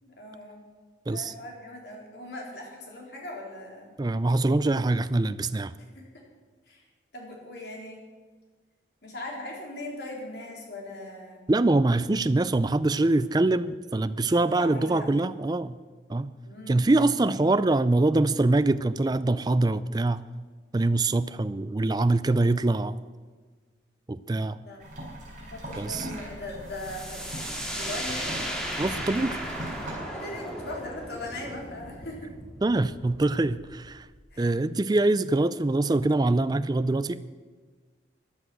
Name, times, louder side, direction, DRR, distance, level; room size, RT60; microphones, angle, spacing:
voice 1, 0.0-0.6 1.1-4.0 5.8-6.2 6.7-6.8 7.1-8.0 9.0-11.4 14.3-15.1 16.4-16.9 24.6-24.8 25.4-28.4 30.0-32.3 34.3-34.5, left 1 dB, 60° left, -1 dB, 3.7 m, -40 dB
voice 2, 4.0-5.7 11.5-15.8 16.1-16.3 16.7-20.2 20.7-23.0 24.1-24.6 25.8-26.1 28.8-29.4 32.6-34.1 34.4-37.2, right 2 dB, 20° right, 14 dB, 0.4 m, -24 dB
sound 1, 24.8-29.9, right 1 dB, 45° right, 4.4 m, -40 dB
sound 2, 26.7-34.3, equal, 5° left, 2.1 m, -36 dB
14.5 x 10.0 x 6.0 m, 1.5 s
head